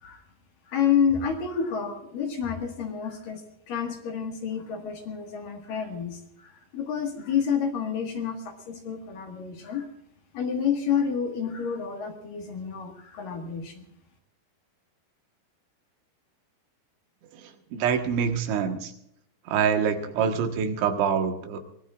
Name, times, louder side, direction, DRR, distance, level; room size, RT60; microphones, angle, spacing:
voice 1, 0.7-9.9 10.3-13.8, left 7 dB, 55° left, 3 dB, 3.0 m, -29 dB
voice 2, 17.3-18.9 19.5-21.6, right 7 dB, 80° right, 5 dB, 3.8 m, -26 dB
24.5 x 19.0 x 2.5 m, 0.74 s
omnidirectional pair, 5.3 m